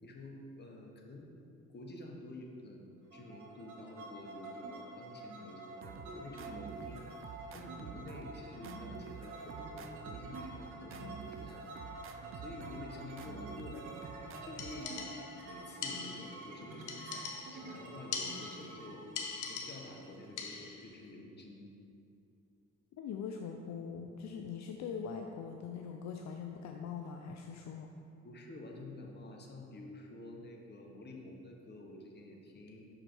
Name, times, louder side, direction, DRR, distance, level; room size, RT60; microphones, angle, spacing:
voice 1, 0.0-1.3 1.7-11.7 12.4-15.1 15.4-21.7 28.2-32.8, left 2 dB, 35° left, 0 dB, 1.1 m, -49 dB
sound 1, 3.1-20.8, right 2 dB, 80° right, 1.2 m, -48 dB
sound 2, 5.8-15.3, right 7 dB, 45° right, 0.4 m, -49 dB
sound 3, 14.6-15.4 15.8-16.5 16.9-17.7 18.1-18.8 19.2-20.0 20.4-20.9, left 5 dB, 80° left, 0.8 m, -42 dB
voice 2, 23.0-27.9, left 6 dB, 65° left, 3 dB, 0.5 m, -42 dB
6.2 x 4.9 x 4.5 m, 2.6 s
cardioid pair, 90°, 30 cm